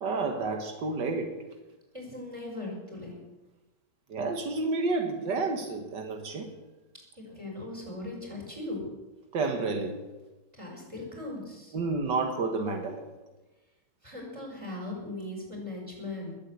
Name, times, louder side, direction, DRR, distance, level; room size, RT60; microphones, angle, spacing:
voice 1, 0.0-1.4 4.1-6.5 9.3-10.0 11.7-13.1, right 3 dB, 85° right, 5 dB, 2.1 m, -30 dB
voice 2, 1.9-3.2 7.2-8.9 10.5-11.7 14.0-16.4, left 2 dB, 15° right, -2 dB, 5.7 m, -39 dB
20.5 x 8.4 x 8.2 m, 1.1 s
omnidirectional pair, 1.8 m